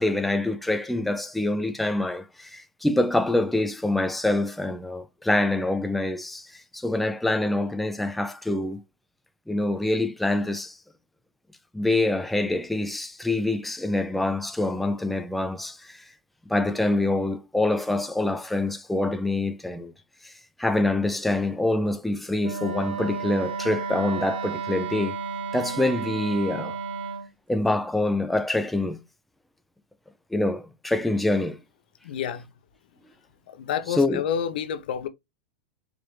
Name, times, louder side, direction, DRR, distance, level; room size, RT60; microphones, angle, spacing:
voice 1, 0.0-8.8 9.5-10.8 11.7-16.0 16.5-19.9 20.2-20.3 20.6-25.2 25.5-26.8 27.5-29.0 30.3-31.6 33.9-34.2, left 2 dB, ahead, 0.3 m, -25 dB
Wind instrument woodwind instrument, 22.4-27.3, right 5 dB, 80° right, 0.9 m, -32 dB
voice 2, 32.0-32.4 33.6-35.1, left 8 dB, 75° left, 0.6 m, -29 dB
4.7 x 2.5 x 3.1 m
supercardioid pair, 150°, 5 cm